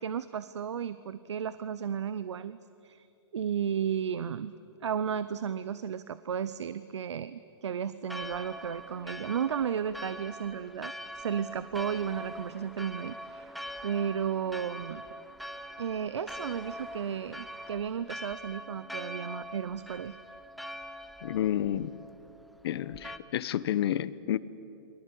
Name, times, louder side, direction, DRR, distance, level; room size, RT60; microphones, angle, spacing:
voice 1, 0.0-3.1 3.3-4.5 4.8-13.5 13.8-15.0 15.8-20.2, right 8 dB, 80° right, 15 dB, 0.8 m, -34 dB
Church bell, 8.1-23.2, equal, ahead, 1.0 m, -43 dB
voice 2, 21.2-21.9 22.6-24.4, left 11 dB, 65° left, 16 dB, 1.1 m, -30 dB
28.5 x 23.5 x 8.6 m, 2.8 s
hypercardioid pair, 125°, 14 cm